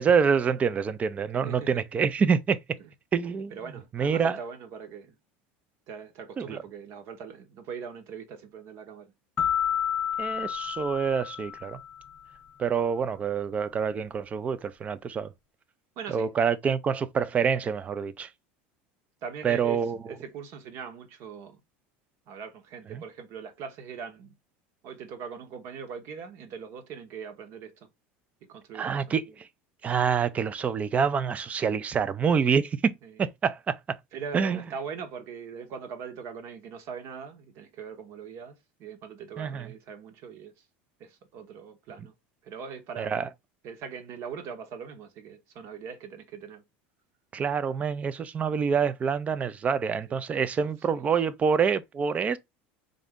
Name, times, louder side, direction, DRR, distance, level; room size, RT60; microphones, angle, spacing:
voice 1, 0.0-2.6 3.1-3.5 3.9-4.4 6.4-6.6 10.2-11.8 12.6-15.3 16.1-18.3 19.4-20.0 22.9-23.0 28.7-29.3 29.8-33.8 34.3-34.6 39.4-39.7 43.0-43.3 47.3-52.4, right 6 dB, 25° right, 0.4 m, -26 dB
voice 2, 1.3-1.8 2.8-2.9 3.5-5.1 5.9-9.1 16.0-16.4 19.2-21.6 22.3-24.3 24.8-27.9 28.4-29.1 33.0-33.2 34.1-40.5 41.0-42.1 42.4-43.2 43.6-46.6 50.1-50.5 50.9-51.1, right 6 dB, 55° right, 1.0 m, -41 dB
sound 1, 9.4-12.1, left 9 dB, 25° left, 0.5 m, -30 dB
3.9 x 2.6 x 3.5 m
supercardioid pair, 130°, 6 cm